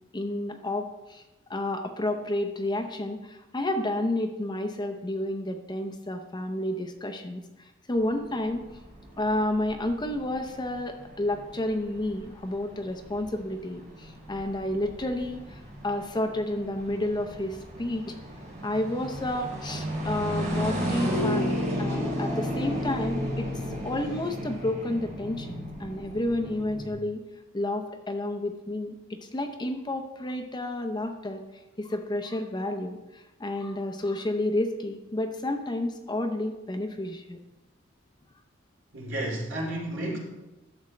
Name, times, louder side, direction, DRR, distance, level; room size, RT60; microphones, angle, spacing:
voice 1, 0.1-1.2 1.5-8.7 9.2-18.1 18.6-27.2 27.5-31.4 31.8-37.4, left 1 dB, 20° left, 6 dB, 0.6 m, -31 dB
sound 1, 8.0-26.9, equal, 35° right, 3.0 m, -34 dB
voice 2, 38.9-40.2, right 1 dB, 65° right, -2 dB, 2.6 m, -31 dB
11.5 x 7.3 x 3.3 m, 1.0 s
head